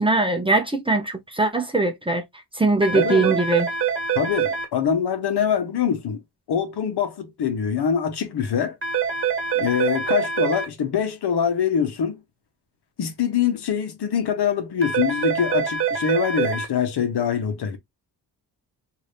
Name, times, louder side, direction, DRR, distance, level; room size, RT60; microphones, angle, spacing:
voice 1, 0.0-2.2 2.5-3.7, right 2 dB, 15° right, 0.7 m, -21 dB
sound 1, 2.8-4.7 8.8-10.7 14.8-16.7, right 7 dB, 30° right, 1.4 m, -24 dB
voice 2, 2.9-3.3 4.1-6.2 6.5-8.8 9.5-12.2 13.0-17.8, left 8 dB, 70° left, 1.0 m, -24 dB
2.8 x 2.6 x 3.2 m
cardioid pair, 95°, 41 cm